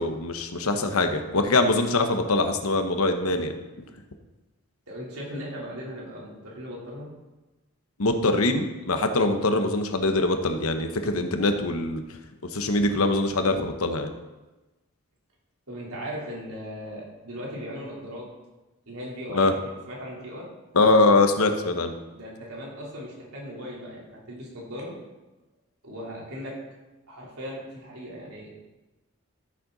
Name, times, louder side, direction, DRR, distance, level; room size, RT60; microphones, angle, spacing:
voice 1, 0.0-3.5 8.0-12.0 12.5-14.1 19.3-19.5 20.7-21.9, left 2 dB, 80° left, 7 dB, 1.1 m, -23 dB
voice 2, 4.9-7.1 15.7-18.3 18.9-20.4 22.1-24.9 25.8-26.6 27.1-28.5, equal, 85° right, -4 dB, 3.7 m, -38 dB
14.0 x 7.7 x 4.1 m, 1.1 s
head